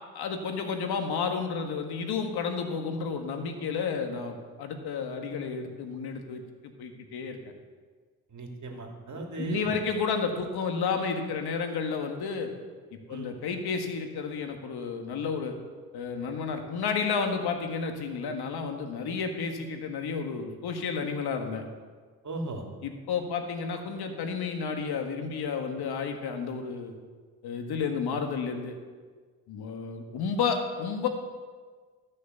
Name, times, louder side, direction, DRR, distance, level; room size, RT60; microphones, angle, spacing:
voice 1, 0.1-7.4 9.4-12.5 13.1-15.5 15.9-21.6 22.8-26.9 27.4-28.8 29.5-31.1, left 5 dB, 75° left, 5 dB, 1.7 m, -31 dB
voice 2, 8.3-9.8 13.1-13.3 22.2-22.7, right 2 dB, 50° right, 2 dB, 2.9 m, -36 dB
14.0 x 6.4 x 6.9 m, 1.5 s
supercardioid pair, 55°, 38 cm